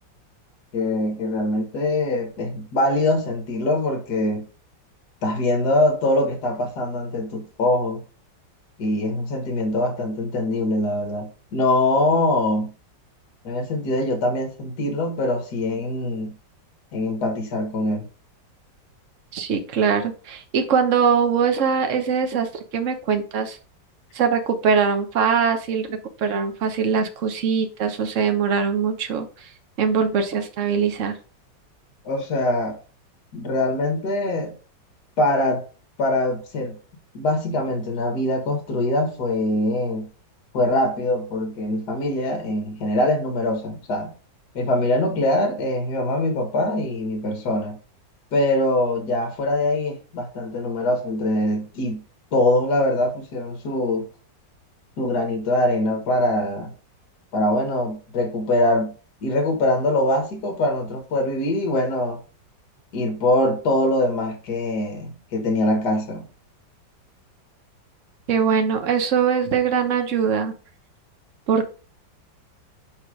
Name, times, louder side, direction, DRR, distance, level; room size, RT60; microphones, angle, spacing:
voice 1, 0.7-4.4 5.2-8.0 8.8-12.7 13.4-16.4 16.9-18.1 32.1-32.8 33.3-34.6 35.2-35.6 36.0-36.8 37.1-40.1 40.5-44.1 44.6-47.8 48.3-52.0 52.3-54.1 55.0-56.7 57.3-58.9 59.2-62.2 62.9-66.2, left 1 dB, 60° left, 2.0 m, -23 dB
voice 2, 19.3-23.6 24.1-29.3 29.8-31.2 68.3-70.5 71.5-71.7, right 6 dB, 45° right, 1.2 m, -22 dB
5.7 x 4.9 x 4.9 m
omnidirectional pair, 2.0 m